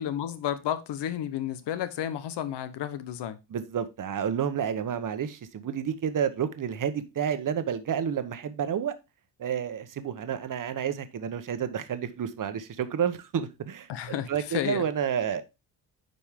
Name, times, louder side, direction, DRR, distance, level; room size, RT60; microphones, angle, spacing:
voice 1, 0.0-3.4 13.9-14.8, left 10 dB, 75° left, 1.1 m, -32 dB
voice 2, 3.5-8.9 9.4-13.9 14.3-15.4, right 8 dB, 50° right, 1.1 m, -30 dB
9.6 x 5.2 x 3.6 m
cardioid pair, 120°, 42 cm